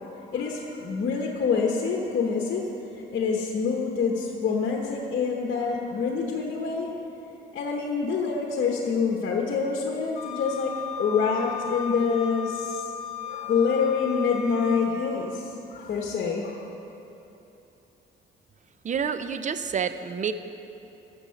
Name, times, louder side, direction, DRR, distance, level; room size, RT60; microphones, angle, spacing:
voice 1, 0.0-2.7 3.1-6.9 7.5-12.8 13.3-16.6, left 5 dB, 55° left, 0 dB, 1.2 m, -26 dB
Wind instrument woodwind instrument, 10.1-14.9, left 8 dB, 35° left, 1.8 m, -35 dB
voice 2, 18.8-20.3, right 7 dB, 40° right, 11 dB, 0.6 m, -28 dB
13.0 x 7.1 x 5.8 m, 3.0 s
cardioid pair, 90°, 20 cm